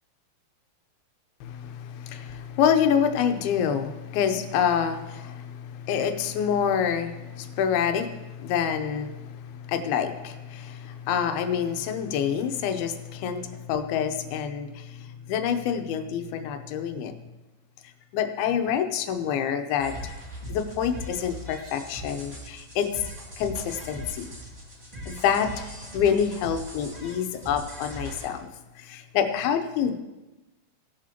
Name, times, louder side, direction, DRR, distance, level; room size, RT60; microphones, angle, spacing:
voice 1, 1.4-17.1 18.1-19.9 20.5-22.9 23.4-24.3 25.1-25.5 25.9-28.5 28.8-30.0, left 8 dB, 85° left, 7 dB, 2.7 m, -27 dB
sound 1, 19.8-28.3, equal, 50° right, 0.5 m, -40 dB
17.0 x 11.5 x 2.9 m, 1.1 s
omnidirectional pair, 4.3 m